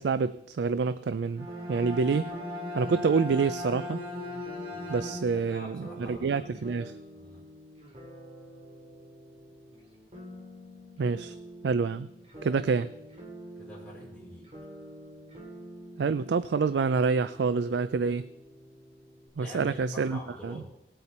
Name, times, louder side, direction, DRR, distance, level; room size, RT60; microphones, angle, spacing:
voice 1, 0.0-2.3 2.7-4.0 4.9-7.0 11.0-11.4 11.6-12.1 12.4-12.9 16.0-18.3 19.4-20.6, right 5 dB, 80° right, 14 dB, 0.4 m, -27 dB
Bowed string instrument, 1.2-5.5, left 2 dB, 55° right, 4.4 m, -38 dB
sound 1, 1.5-19.3, right 1 dB, 35° right, 2.7 m, -47 dB
voice 2, 4.7-6.5 7.1-7.5 13.5-14.5 19.4-20.7, equal, 5° left, -6 dB, 5.9 m, -46 dB
18.5 x 8.2 x 4.3 m, 0.82 s
head